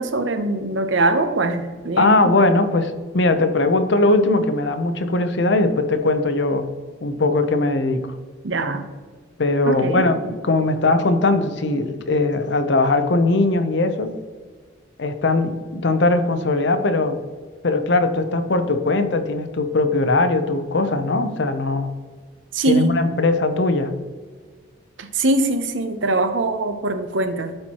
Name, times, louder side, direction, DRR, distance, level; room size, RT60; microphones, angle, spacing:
voice 1, 0.0-2.3 8.4-8.8 9.7-10.0 22.5-23.0 25.0-27.6, right 2 dB, 90° right, 9 dB, 0.8 m, -22 dB
voice 2, 2.0-6.7 7.0-8.0 9.4-14.2 15.0-17.2 17.6-21.9 22.7-23.9, left 2 dB, 70° left, 9 dB, 0.7 m, -20 dB
12.5 x 4.4 x 2.9 m, 1.5 s
head